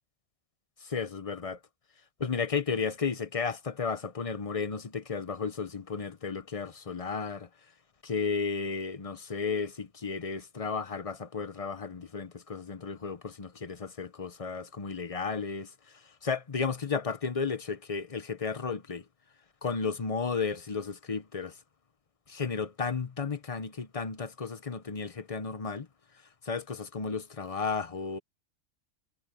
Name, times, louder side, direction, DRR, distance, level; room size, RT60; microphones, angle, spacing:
voice 1, 0.9-1.6 2.2-7.5 8.0-19.1 19.6-21.6 22.3-25.9 26.4-28.2, left 5 dB, 30° left, 0.9 m, -33 dB
omnidirectional pair, 1.3 m